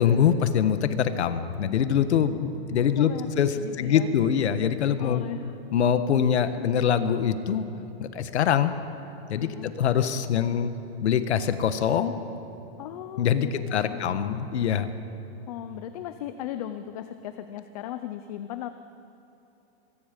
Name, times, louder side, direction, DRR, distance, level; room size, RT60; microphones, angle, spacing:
voice 1, 0.0-3.1 3.4-5.2 5.7-7.6 8.0-8.8 9.3-10.7 11.0-12.2 13.2-14.9, left 8 dB, 90° left, 10 dB, 1.5 m, -24 dB
voice 2, 2.7-3.3 3.5-4.1 5.0-5.5 9.4-9.9 12.8-13.5 13.9-14.4 15.5-18.7, left 11 dB, 35° left, 10 dB, 0.7 m, -37 dB
25.0 x 22.5 x 5.3 m, 3.0 s
supercardioid pair, 170°, 32 cm